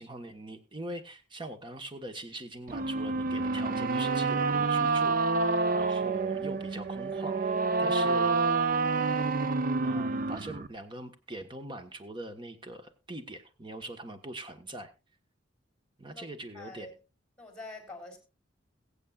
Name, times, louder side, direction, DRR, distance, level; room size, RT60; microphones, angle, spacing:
voice 1, 0.0-7.4 7.8-8.4 9.8-14.9 16.0-16.9, right 1 dB, 25° right, 1.2 m, -42 dB
sound 1, 2.7-10.7, right 3 dB, 45° right, 0.6 m, -28 dB
voice 2, 16.5-16.9 17.4-18.2, left 2 dB, 5° left, 3.5 m, -45 dB
22.0 x 8.3 x 2.4 m
head